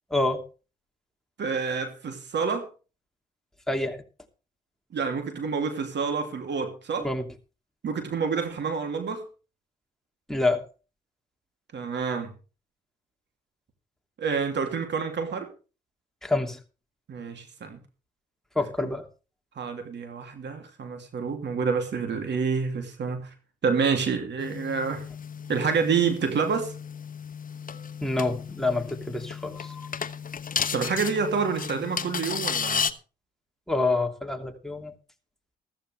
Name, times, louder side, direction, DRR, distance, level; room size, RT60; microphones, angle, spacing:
voice 1, 0.1-0.4 3.7-4.0 7.0-7.3 10.3-10.6 16.2-16.6 18.5-19.0 28.0-29.8 33.7-34.9, left 2 dB, ahead, 3 dB, 2.8 m, -27 dB
voice 2, 1.4-2.7 4.9-7.1 7.8-9.2 11.7-12.3 14.2-15.5 17.1-17.8 18.8-18.9 19.6-23.3 23.6-25.0 25.5-26.7 30.7-32.9, right 5 dB, 60° right, 6 dB, 2.9 m, -28 dB
sound 1, 24.4-32.9, left 7 dB, 45° left, 1.0 m, -34 dB
14.5 x 14.0 x 3.4 m, 0.34 s
supercardioid pair, 55°, 20 cm